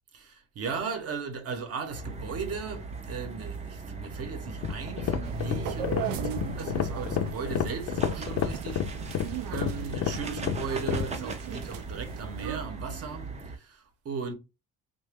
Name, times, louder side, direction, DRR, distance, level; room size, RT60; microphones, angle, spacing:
voice 1, 0.1-14.3, right 5 dB, 45° right, 0.9 m, -37 dB
sound 1, 1.9-13.6, right 3 dB, 20° right, 0.4 m, -38 dB
sound 2, 4.5-11.1, left 9 dB, 50° left, 0.4 m, -30 dB
sound 3, 5.2-12.6, right 8 dB, 90° right, 0.5 m, -38 dB
2.9 x 2.1 x 3.4 m
cardioid pair, 135°, 33 cm